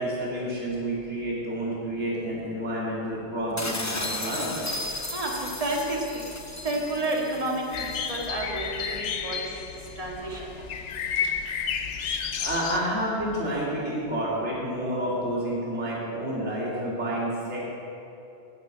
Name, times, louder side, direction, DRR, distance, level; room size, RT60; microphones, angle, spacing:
voice 1, 0.0-4.5 12.4-17.7, right 1 dB, 80° right, -6 dB, 2.9 m, -29 dB
sound 1, 3.6-8.3, left 2 dB, 20° left, 0.6 m, -35 dB
voice 2, 5.1-6.2 6.6-9.7 10.0-10.5, right 1 dB, 30° right, -2 dB, 2.0 m, -30 dB
sound 2, 7.7-12.8, left 7 dB, 85° left, 1.0 m, -31 dB
9.5 x 8.3 x 9.2 m, 2.8 s
omnidirectional pair, 1.2 m